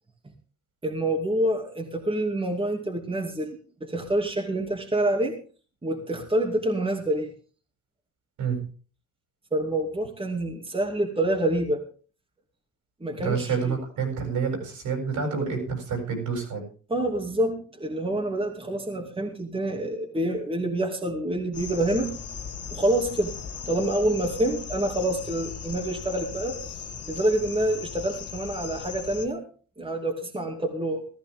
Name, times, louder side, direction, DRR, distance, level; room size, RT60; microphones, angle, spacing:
voice 1, 0.8-5.4 5.8-7.3 9.5-11.8 13.0-13.8 16.9-22.1 22.7-23.3 23.6-26.6 27.1-29.4 29.8-31.1, right 1 dB, 20° right, 2 dB, 2.7 m, -27 dB
voice 2, 13.2-16.6, right 5 dB, 80° right, 1 dB, 7.6 m, -28 dB
sound 1, 21.5-29.3, left 6 dB, 55° left, 1.7 m, -38 dB
15.0 x 14.0 x 3.7 m, 0.39 s
cardioid pair, 90°, 30 cm